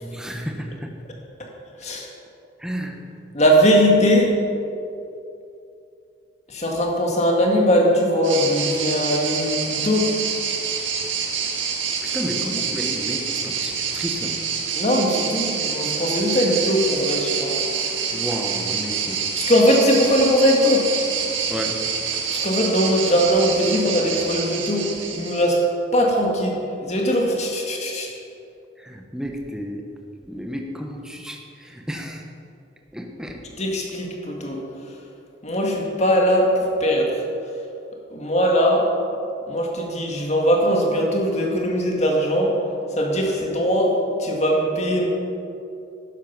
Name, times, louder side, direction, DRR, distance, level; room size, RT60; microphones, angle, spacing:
voice 1, 0.0-1.0 2.6-3.0 12.0-14.4 18.1-19.2 21.5-21.9 28.8-29.9 30.2-32.3 32.9-33.7, equal, 5° right, 2 dB, 0.9 m, -32 dB
voice 2, 3.3-4.3 6.5-10.1 14.8-17.6 19.4-20.9 22.3-25.6 25.9-28.1 33.6-34.6 35.4-37.1 38.1-38.9 39.5-42.5 43.0-45.1, equal, 35° left, 0 dB, 2.0 m, -20 dB
sound 1, 8.2-25.6, right 6 dB, 85° right, 1.6 m, -27 dB
12.5 x 9.9 x 6.0 m, 2.6 s
head